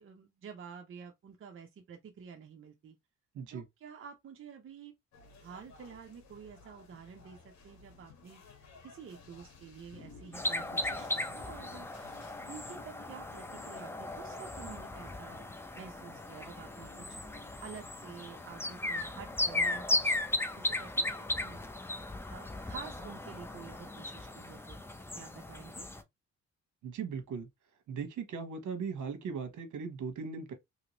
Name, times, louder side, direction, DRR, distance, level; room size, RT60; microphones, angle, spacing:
voice 1, 0.0-3.0 3.5-4.9 5.4-8.4 8.8-11.9 12.5-15.4 15.8-17.1 17.6-20.2 20.5-21.7 21.9-24.8 25.2-25.9, right 7 dB, 45° right, 0.6 m, -49 dB
sound 1, 5.1-19.6, left 4 dB, 65° left, 1.2 m, -57 dB
sound 2, 10.3-26.0, left 2 dB, 10° left, 0.5 m, -36 dB
voice 2, 26.8-27.5 27.9-30.5, right 5 dB, 75° right, 1.0 m, -38 dB
3.0 x 2.8 x 2.9 m
cardioid pair, 90°, 30 cm